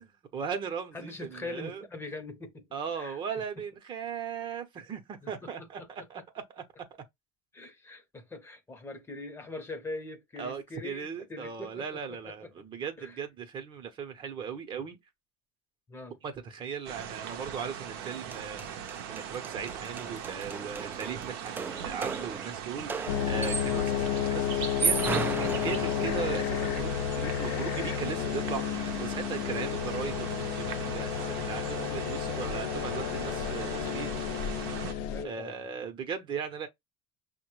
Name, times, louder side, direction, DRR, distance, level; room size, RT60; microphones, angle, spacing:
voice 1, 0.0-1.8 2.7-6.6 10.4-15.0 16.2-34.1 34.7-36.7, right 7 dB, 40° right, 0.8 m, -38 dB
voice 2, 0.9-2.7 3.0-3.2 5.2-6.1 7.5-12.5 13.0-13.2 15.9-16.1 23.8-24.1 35.1-35.6, left 2 dB, 20° left, 0.8 m, -42 dB
sound 1, 16.9-34.9, right 9 dB, 80° right, 0.6 m, -40 dB
sound 2, 18.0-18.1 18.3-23.9 24.6-26.4, right 5 dB, 15° right, 0.3 m, -35 dB
sound 3, 23.1-35.2, left 10 dB, 70° left, 0.4 m, -31 dB
5.6 x 2.1 x 3.0 m
supercardioid pair, 105°, 13 cm